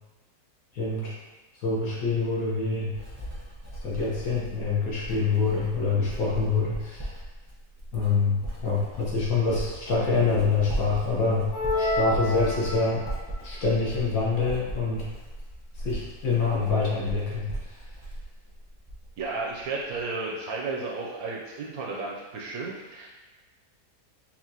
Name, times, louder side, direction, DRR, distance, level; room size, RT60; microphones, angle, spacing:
voice 1, 0.7-1.1 1.6-2.9 3.8-7.1 7.9-11.5 11.8-13.0 13.4-15.0 15.8-17.5, left 4 dB, 60° left, -5 dB, 1.3 m, -26 dB
Writing, 2.9-19.2 19.5-20.0, right 1 dB, 25° right, 0.4 m, -38 dB
sound 1, 11.5-13.2, left 1 dB, 85° left, 1.4 m, -28 dB
voice 2, 19.2-23.1, right 3 dB, 70° right, -3 dB, 1.0 m, -33 dB
5.7 x 2.5 x 2.8 m, 1.2 s
omnidirectional pair, 1.8 m